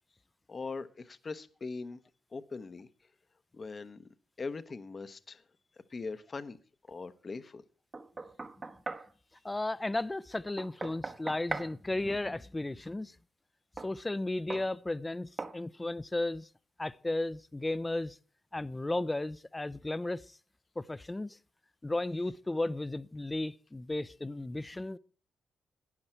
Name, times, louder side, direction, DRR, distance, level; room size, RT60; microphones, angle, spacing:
voice 1, 0.5-2.0 2.3-2.9 3.5-4.0 4.4-5.4 5.9-6.6 6.9-7.6, left 4 dB, 40° left, 0.9 m, -41 dB
Knock, 7.9-9.1 10.6-11.7 13.8-13.9 14.5-14.7 15.4-15.6, right 3 dB, 35° right, 1.0 m, -39 dB
voice 2, 9.4-13.2 13.8-16.5 16.8-18.2 18.5-20.4 20.8-21.4 21.8-25.0, left 2 dB, 20° left, 0.6 m, -34 dB
12.0 x 9.8 x 4.5 m
supercardioid pair, 50°, 0 cm